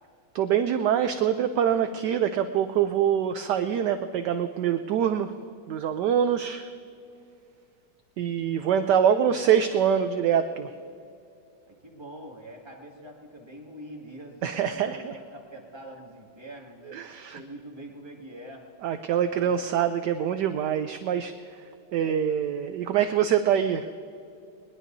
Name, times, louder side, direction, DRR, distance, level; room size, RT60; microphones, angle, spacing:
voice 1, 0.3-5.4 5.7-6.7 8.2-10.7 14.4-15.1 16.9-17.4 18.8-21.3 21.9-23.9, right 9 dB, 70° right, 9 dB, 1.0 m, -24 dB
voice 2, 8.5-9.3 11.7-17.0 17.3-18.7 19.4-19.5, right 1 dB, 15° right, -2 dB, 1.9 m, -45 dB
21.0 x 20.5 x 2.7 m, 2.5 s
omnidirectional pair, 2.3 m